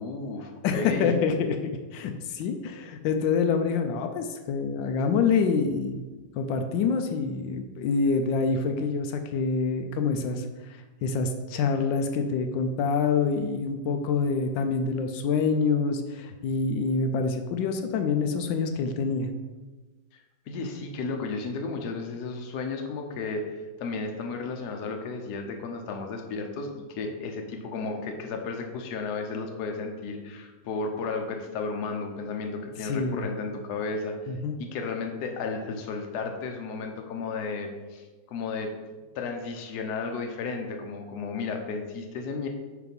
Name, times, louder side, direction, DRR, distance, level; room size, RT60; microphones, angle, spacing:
voice 1, 0.0-1.2 20.5-34.1 34.6-38.7 39.1-42.5, left 4 dB, 65° left, 3 dB, 1.3 m, -33 dB
voice 2, 0.6-1.6 1.9-6.0 6.3-10.4 10.7-19.3 32.8-33.2 34.3-34.6, left 5 dB, 90° left, 5 dB, 1.3 m, -26 dB
4.8 x 4.8 x 5.2 m, 1.3 s
omnidirectional pair, 2.0 m